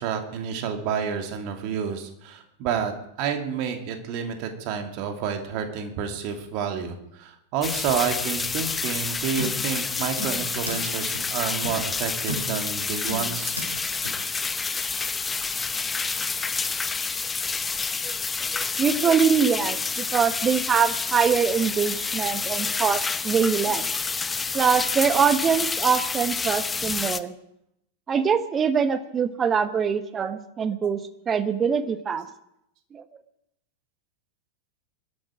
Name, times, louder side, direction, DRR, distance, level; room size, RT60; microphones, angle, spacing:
voice 1, 0.0-2.9 3.2-13.5 23.6-23.7, right 7 dB, 45° right, 5 dB, 2.5 m, -29 dB
sound 1, 7.6-27.2, left 4 dB, 15° left, 0.8 m, -28 dB
sound 2, 9.4-9.8 10.2-10.9 11.2-11.3 11.6-11.8 12.3-12.7 13.1-13.8 14.1-14.2, equal, 85° right, 3.0 m, -34 dB
voice 2, 18.5-23.8 24.5-27.3 28.1-31.0 31.3-32.2 32.9-33.0, right 6 dB, 20° right, 11 dB, 1.3 m, -23 dB
21.5 x 13.0 x 4.9 m, 0.78 s
figure-of-eight pair, 90°, 0 cm